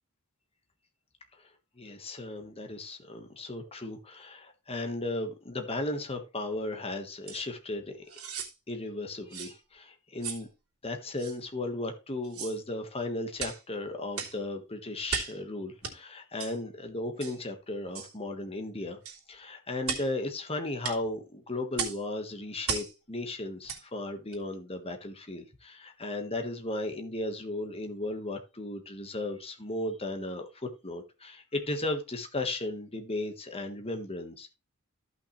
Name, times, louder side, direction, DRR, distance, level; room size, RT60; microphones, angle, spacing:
voice 1, 1.8-8.0 8.7-10.5 10.8-19.0 19.3-34.5, left 2 dB, 25° left, 1.4 m, -35 dB
sound 1, 7.3-7.4 8.1-8.5 9.3-9.6 10.2-10.5 11.2-11.4 12.2-12.6 13.4-13.6 14.1-14.4 15.1-15.4 15.8-16.0 16.4-16.6 17.2-17.4 17.9-18.1 19.0-19.2 19.8-20.1 20.8-21.0 21.7-22.0 22.6-22.9 23.6-23.8 24.3-24.4, right 6 dB, 80° right, 2.8 m, -36 dB
14.0 x 5.9 x 3.2 m
head